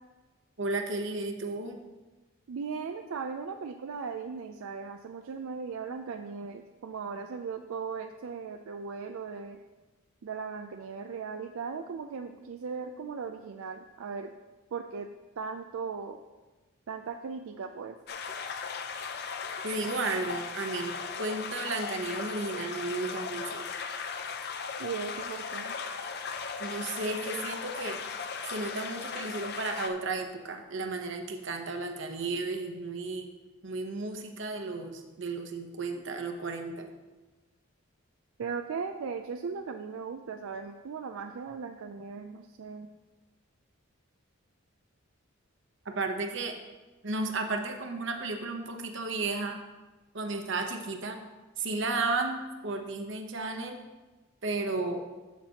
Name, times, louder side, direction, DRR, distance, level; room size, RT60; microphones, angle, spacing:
voice 1, 0.6-1.8 19.6-23.7 26.6-28.0 28.5-33.3 33.6-36.9 45.8-46.5 47.0-49.6 50.1-51.2 51.6-53.8 54.4-55.0, right 3 dB, 60° right, 4 dB, 0.9 m, -33 dB
voice 2, 2.5-9.6 10.2-14.3 14.7-15.1 15.4-16.2 16.9-18.0 24.8-25.8 38.4-42.9, right 5 dB, 80° right, 6 dB, 0.4 m, -38 dB
sound 1, 18.1-29.9, left 5 dB, 50° left, 0.5 m, -37 dB
13.0 x 5.9 x 2.9 m, 1.2 s
head